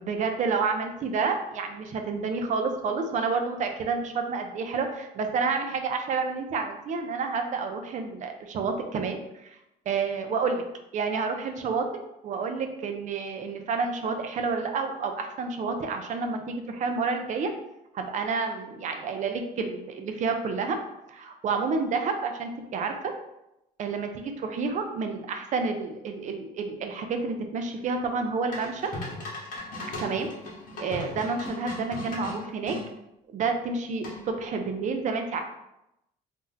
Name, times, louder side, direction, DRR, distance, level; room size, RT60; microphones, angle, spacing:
voice 1, 0.0-9.5 9.9-10.6 10.9-17.5 17.9-20.8 21.1-22.9 23.8-28.8 30.0-30.3 30.8-32.8 33.3-35.4, right 4 dB, 45° right, 5 dB, 0.5 m, -29 dB
sound 1, 28.5-32.8 34.0-34.5, left 1 dB, 55° left, 1.0 m, -37 dB
2.6 x 2.0 x 3.8 m, 0.87 s
cardioid pair, 110°, 17 cm